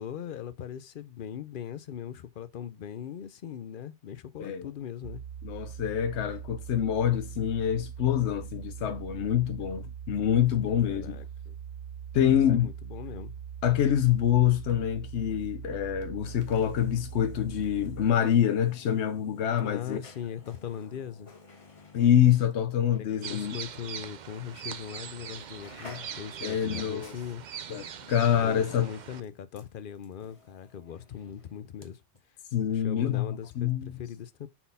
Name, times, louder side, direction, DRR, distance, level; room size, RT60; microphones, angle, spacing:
voice 1, 0.0-5.2 10.7-11.6 12.2-13.3 19.6-21.3 23.0-27.4 28.4-32.0 32.7-34.5, left 9 dB, 55° left, 0.7 m, -40 dB
sound 1, 5.0-18.1, right 8 dB, 80° right, 0.9 m, -42 dB
voice 2, 5.4-11.2 12.1-12.7 13.6-20.0 21.9-23.6 26.4-27.1 27.7-28.9 32.5-33.3 33.6-33.9, left 10 dB, 85° left, 0.9 m, -26 dB
sound 2, 15.9-23.7 24.0-24.2 24.9-25.1 25.4-31.9 32.1-32.2, left 3 dB, 30° left, 1.1 m, -53 dB
sound 3, 23.2-29.2, right 8 dB, 50° right, 0.6 m, -42 dB
5.9 x 4.2 x 5.4 m
omnidirectional pair, 1.1 m